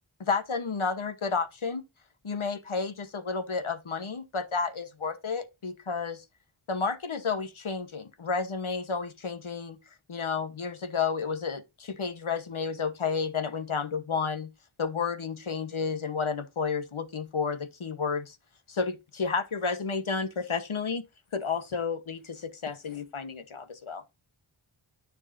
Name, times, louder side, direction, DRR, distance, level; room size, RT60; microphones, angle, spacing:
voice 1, 0.2-1.8 2.2-6.2 6.7-9.8 10.1-14.5 14.8-18.4 18.7-21.0 21.3-24.1, left 5 dB, 80° left, 1.2 m, -31 dB
13.0 x 4.7 x 2.7 m
wide cardioid pair, 50°, 48 cm